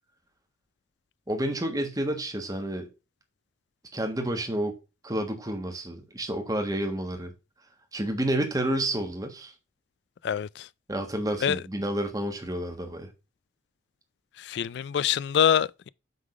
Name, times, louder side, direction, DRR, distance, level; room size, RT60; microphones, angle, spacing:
voice 1, 1.3-2.9 3.9-4.8 5.0-7.3 7.9-9.5 10.9-13.1, right 1 dB, 20° right, 1.3 m, -30 dB
voice 2, 10.2-10.7 11.4-11.6 14.4-15.9, left 9 dB, 60° left, 0.3 m, -25 dB
8.2 x 3.7 x 4.8 m
head